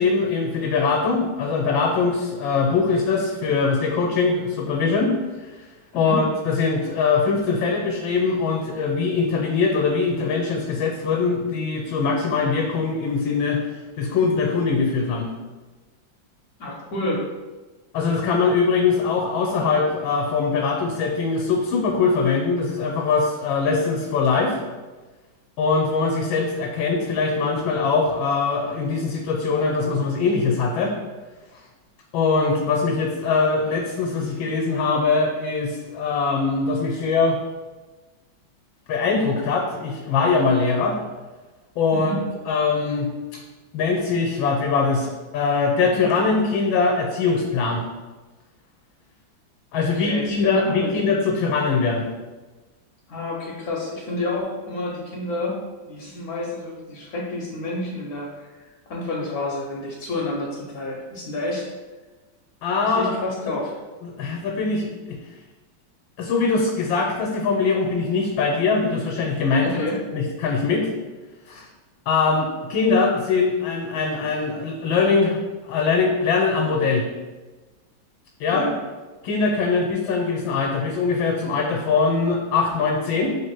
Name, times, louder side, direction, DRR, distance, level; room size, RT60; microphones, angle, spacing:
voice 1, 0.0-5.1 5.4-5.5 5.9-13.6 14.0-15.3 17.9-24.6 25.6-30.9 32.1-37.4 38.9-41.0 41.8-42.1 42.5-43.4 43.7-47.8 49.7-52.1 62.6-63.1 64.0-65.2 66.2-69.8 70.1-70.9 71.5-71.7 72.1-75.4 75.7-77.1 78.4-78.7 79.2-83.3, left 4 dB, 80° left, 1 dB, 1.4 m, -22 dB
voice 2, 16.6-17.3 41.9-42.2 49.9-50.9 53.1-55.6 55.9-61.6 62.8-63.7 69.6-70.0 78.5-78.8, left 2 dB, 65° left, -3 dB, 1.0 m, -29 dB
3.5 x 3.4 x 4.5 m, 1.3 s
omnidirectional pair, 2.1 m